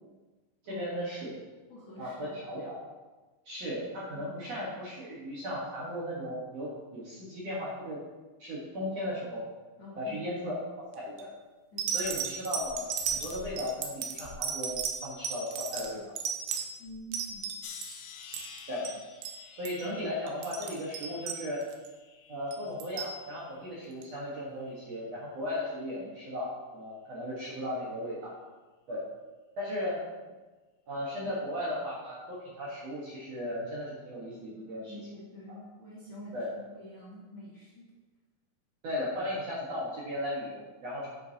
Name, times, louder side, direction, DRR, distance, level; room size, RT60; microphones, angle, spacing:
voice 1, 0.6-1.4 2.0-2.8 3.5-8.0 8.4-9.4 10.0-10.6 10.9-11.3 11.9-14.7 15.0-16.1 18.7-18.9 19.6-21.6 22.3-28.3 28.9-29.0 29.6-30.0 30.9-35.0 35.5-35.6 36.3-36.5 38.8-41.1, left 1 dB, 55° right, -6 dB, 2.1 m, -36 dB
voice 2, 1.7-2.6 4.2-4.5 9.8-10.4 11.7-12.0 16.8-17.5 34.8-37.9, equal, 40° left, -9 dB, 2.0 m, -47 dB
sound 1, 10.9-11.2 11.8-17.9 18.2-18.6 18.9-19.0 19.2-19.4 19.7-19.9 20.3-21.9 22.5-23.2 24.0-24.1, right 7 dB, 90° right, 2.7 m, -35 dB
sound 2, 17.6-22.8 23.2-23.9 24.6-24.9, left 7 dB, 80° left, 2.0 m, -50 dB
9.2 x 7.7 x 2.8 m, 1.2 s
omnidirectional pair, 4.4 m